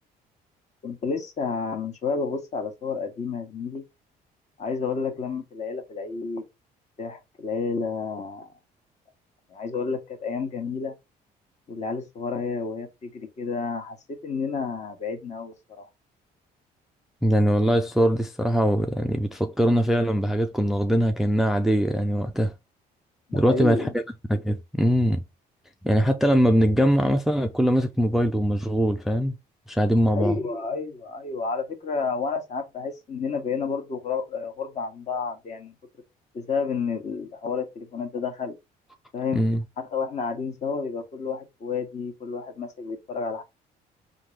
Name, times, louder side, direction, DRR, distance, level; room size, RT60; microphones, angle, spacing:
voice 1, 0.8-3.8 4.6-6.4 7.0-8.5 9.5-10.9 11.7-15.9 23.3-23.9 30.1-35.7 36.3-38.5 39.1-39.4 39.8-43.4, left 5 dB, 45° left, 1.2 m, -30 dB
voice 2, 17.2-22.5 23.3-24.0 24.3-25.2 25.8-29.3 29.7-30.4 39.3-39.6, equal, ahead, 0.3 m, -22 dB
3.7 x 2.6 x 3.2 m
cardioid pair, 110°, 17 cm